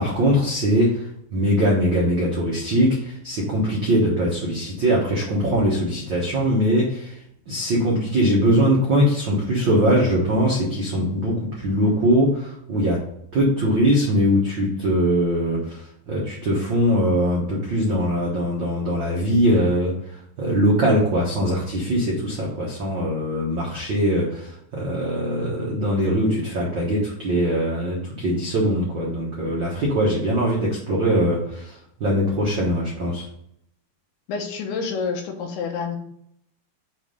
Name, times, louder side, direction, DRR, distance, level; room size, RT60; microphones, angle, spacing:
voice 1, 0.0-7.2 7.5-13.0 13.3-19.9 20.4-33.3, equal, 80° right, -5 dB, 1.0 m, -21 dB
voice 2, 34.3-36.0, left 5 dB, 90° left, 3 dB, 3.1 m, -28 dB
7.0 x 3.5 x 5.4 m, 0.72 s
omnidirectional pair, 4.4 m